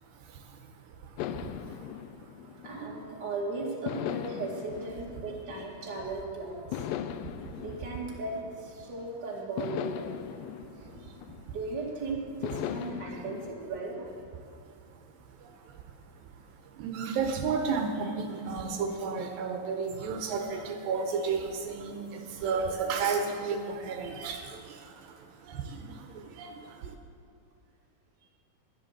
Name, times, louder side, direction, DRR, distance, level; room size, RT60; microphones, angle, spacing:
voice 1, 0.2-0.7 1.0-1.9 7.4-7.5 10.8-11.6 13.0-13.2 15.4-15.8 16.2-16.3 16.7-26.9, right 5 dB, 80° right, 3 dB, 2.6 m, -33 dB
sound 1, 1.2-3.3 3.9-6.1 6.7-9.0 9.6-11.8 12.4-13.5, left 10 dB, 85° left, 2.2 m, -39 dB
voice 2, 2.6-6.9 7.6-8.4 8.6-10.1 11.5-14.0, right 3 dB, 35° right, -3 dB, 2.5 m, -36 dB
11.0 x 10.5 x 6.5 m, 2.4 s
omnidirectional pair, 4.0 m